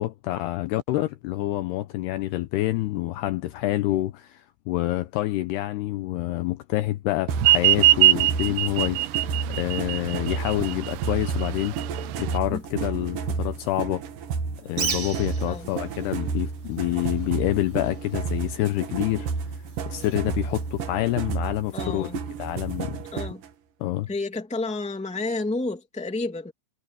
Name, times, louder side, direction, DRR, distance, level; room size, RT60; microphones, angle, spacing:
voice 1, 0.0-11.8 12.2-14.0 14.6-19.3 19.9-22.1 22.4-23.0 23.8-24.1, left 16 dB, 90° left, 2.4 m, -27 dB
sound 1, 7.3-23.5, right 5 dB, 60° right, 2.6 m, -31 dB
sound 2, 7.4-12.4, right 16 dB, 80° right, 2.6 m, -21 dB
Bird, 14.7-21.3, right 5 dB, 40° right, 2.8 m, -38 dB
voice 2, 21.7-22.2 23.1-23.4 24.1-26.5, left 2 dB, 5° left, 1.4 m, -30 dB
omnidirectional pair, 5.5 m